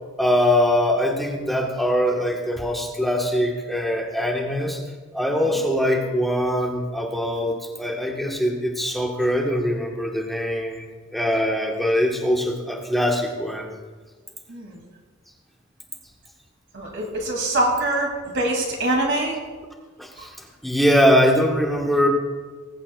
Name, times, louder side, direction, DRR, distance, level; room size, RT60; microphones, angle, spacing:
voice 1, 0.2-4.8 5.1-10.9 11.1-13.7 20.0-22.1, equal, ahead, -1 dB, 1.1 m, -22 dB
voice 2, 14.5-14.8 16.7-19.4, right 1 dB, 60° right, 0 dB, 2.2 m, -24 dB
19.5 x 8.7 x 2.2 m, 1.4 s
head